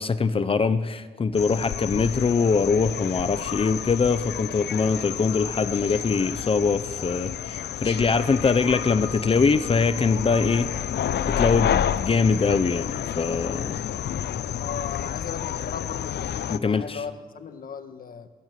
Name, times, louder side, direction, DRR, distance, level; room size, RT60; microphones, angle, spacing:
voice 1, 0.0-10.7 11.3-13.8 16.5-16.8, left 5 dB, 30° left, 12 dB, 0.8 m, -23 dB
sound 1, 1.3-16.6, left 10 dB, 75° left, 0.7 m, -30 dB
voice 2, 14.6-18.3, left 6 dB, 55° left, 8 dB, 1.6 m, -37 dB
23.0 x 17.0 x 7.6 m, 1.4 s
wide cardioid pair, 150°, 17 cm